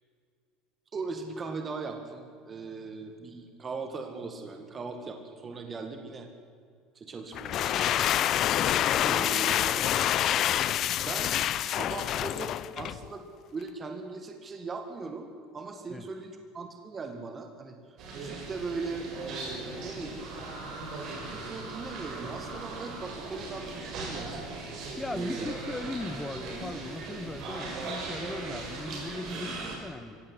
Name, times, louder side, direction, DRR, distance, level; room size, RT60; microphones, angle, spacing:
voice 1, 0.9-6.3 7.0-8.2 9.0-9.9 11.1-11.3 11.6-15.3 15.5-20.2 21.3-24.4 24.7-24.8 25.1-25.5, right 4 dB, 20° right, 5 dB, 2.0 m, -39 dB
sound 1, 7.3-13.1, left 11 dB, 40° left, 0.6 m, -27 dB
sound 2, 18.0-29.8, right 3 dB, 40° right, 6.3 m, -38 dB
voice 2, 25.0-30.2, left 2 dB, 5° left, 12 dB, 1.1 m, -38 dB
23.0 x 17.0 x 10.0 m, 2.3 s
cardioid pair, 165°, 0 cm